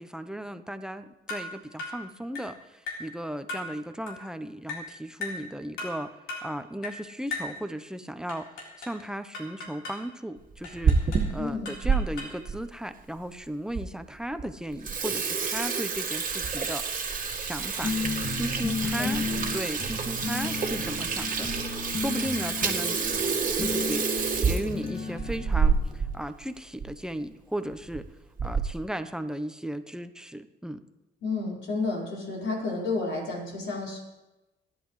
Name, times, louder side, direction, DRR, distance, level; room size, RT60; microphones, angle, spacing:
voice 1, 0.0-6.1 6.4-8.5 8.8-17.9 18.3-19.3 19.5-23.0 23.4-28.1 28.4-30.8, right 1 dB, 5° right, 9 dB, 0.9 m, -36 dB
sound 1, 1.3-1.5 1.8-2.0 2.3-2.5 2.9-3.1 3.5-3.7 4.1-4.2 4.7-4.9 5.2-5.4 5.8-6.0 6.3-6.5 6.8-7.0 7.3-7.6 8.3-9.0 9.3-10.0 10.6-11.3 11.6-12.4, left 3 dB, 85° left, 4.0 m, -37 dB
Water tap faucet / Sink (filling or washing), 10.5-12.0 12.5-12.6 13.3-13.4 13.7-13.8 14.2-14.4 14.7-26.1 26.4-26.5 26.8-26.9 27.7-28.0 28.4-28.8, right 5 dB, 40° right, 1.8 m, -28 dB
voice 2, 11.4-11.7 19.0-19.5 31.2-34.0, left 3 dB, 70° left, -3 dB, 4.9 m, -31 dB
sound 2, 17.8-26.3, left 4 dB, 50° left, 2.5 m, -34 dB
27.0 x 10.5 x 3.3 m, 1.0 s
cardioid pair, 90°, 20 cm